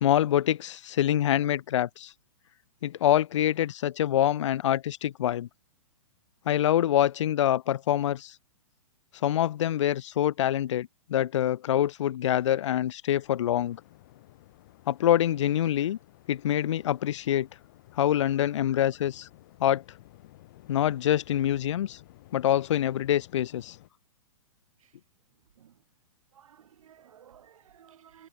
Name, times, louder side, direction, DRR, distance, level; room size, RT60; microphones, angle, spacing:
voice 1, 0.0-2.1 2.8-5.5 6.5-8.4 9.2-13.8 14.9-16.0 16.3-17.5 17.9-19.3 19.6-19.8 20.7-22.0 22.3-23.8, left 11 dB, 60° left, 0.5 m, -25 dB
Waves surf, 13.2-23.9, left 16 dB, 35° left, 2.1 m, -55 dB
voice 2, 26.3-28.3, right 9 dB, 70° right, 1.1 m, -55 dB
hypercardioid pair, 170°, 18 cm